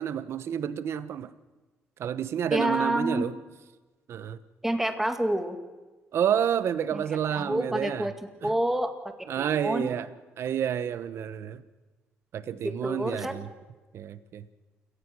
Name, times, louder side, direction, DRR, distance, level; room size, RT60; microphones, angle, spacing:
voice 1, 0.0-1.3 2.0-3.4 4.1-4.4 6.1-8.1 8.4-8.5 9.3-10.1 10.4-11.6 12.3-13.5 13.9-14.5, right 9 dB, 65° right, 14 dB, 1.1 m, -29 dB
voice 2, 2.5-3.2 4.6-5.6 6.9-7.0 7.3-8.1 8.4-8.9 9.4-9.9 12.6-13.4, right 1 dB, 5° right, 7 dB, 2.2 m, -28 dB
28.0 x 18.0 x 6.2 m, 1.2 s
cardioid pair, 110°, 5 cm